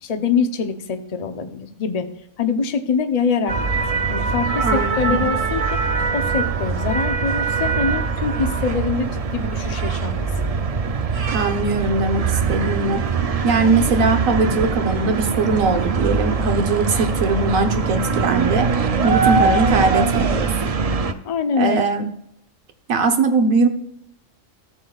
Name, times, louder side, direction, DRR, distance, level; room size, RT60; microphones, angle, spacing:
voice 1, 0.0-2.1 2.4-3.6 4.1-5.7 6.1-10.3 21.2-21.8, left 5 dB, 35° left, 6 dB, 0.7 m, -24 dB
sound 1, 3.5-21.1, right 5 dB, 45° right, 0.5 m, -22 dB
voice 2, 4.6-5.3 11.3-13.0 13.4-18.7 19.0-20.5 21.6-22.1 22.9-23.7, right 3 dB, 90° right, 6 dB, 1.4 m, -20 dB
14.0 x 7.5 x 2.4 m, 0.75 s
omnidirectional pair, 1.4 m